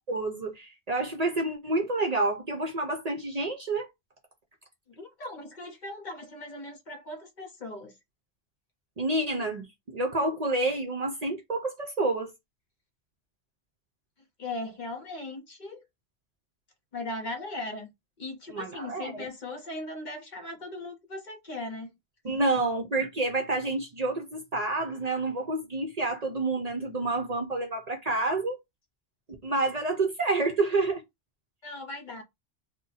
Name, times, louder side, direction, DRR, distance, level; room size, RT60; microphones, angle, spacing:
voice 1, 0.1-3.9 9.0-9.7 9.9-12.3 18.5-19.3 22.2-28.6 29.4-31.0, right 2 dB, 45° right, 0.6 m, -28 dB
voice 2, 4.9-8.0 14.4-15.8 16.9-17.9 18.2-21.9 31.6-32.2, left 2 dB, 50° left, 0.7 m, -38 dB
2.5 x 2.2 x 3.9 m
omnidirectional pair, 1.1 m